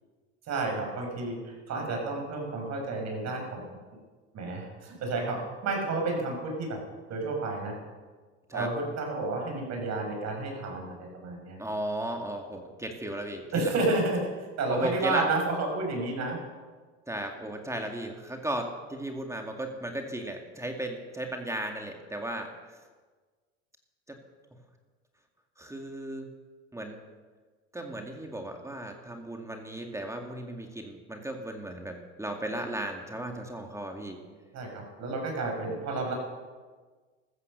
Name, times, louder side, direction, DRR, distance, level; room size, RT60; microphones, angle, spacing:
voice 1, 0.5-3.6 4.3-6.8 7.1-7.7 8.5-11.6 13.5-16.4 34.5-36.1, right 3 dB, 50° right, 2 dB, 6.8 m, -31 dB
voice 2, 11.6-13.4 14.7-15.2 17.1-22.5 24.1-24.2 25.6-26.3 26.7-27.0 27.7-34.2, right 1 dB, 10° right, 3 dB, 2.2 m, -35 dB
15.0 x 14.0 x 6.8 m, 1.4 s
hypercardioid pair, 85°, 35 cm